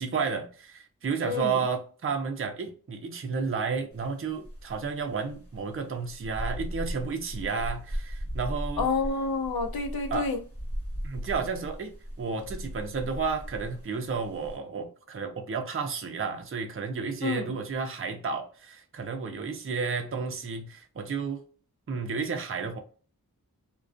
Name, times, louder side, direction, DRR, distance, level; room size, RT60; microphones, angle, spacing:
voice 1, 0.0-8.9 10.1-10.3 11.0-21.4 21.9-22.8, right 5 dB, 35° right, 0.5 m, -32 dB
voice 2, 1.2-1.7 8.8-10.4 17.2-17.5, left 4 dB, 80° left, 0.5 m, -29 dB
sound 1, 3.9-4.1 4.4-14.6, equal, 40° left, 1.0 m, -37 dB
2.3 x 2.2 x 2.4 m
wide cardioid pair, 50°, 36 cm